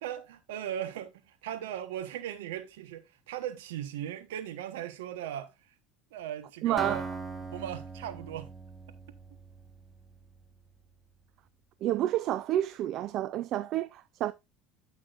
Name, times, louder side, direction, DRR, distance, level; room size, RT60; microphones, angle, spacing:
voice 1, 0.0-5.5 6.1-7.0 7.5-8.5, right 10 dB, 80° right, 1.1 m, -38 dB
voice 2, 6.6-7.1 11.8-14.3, right 13 dB, 55° right, 0.5 m, -29 dB
Acoustic guitar, 6.8-10.6, right 3 dB, 5° right, 1.4 m, -41 dB
12.5 x 6.0 x 2.5 m
hypercardioid pair, 80°, 0 cm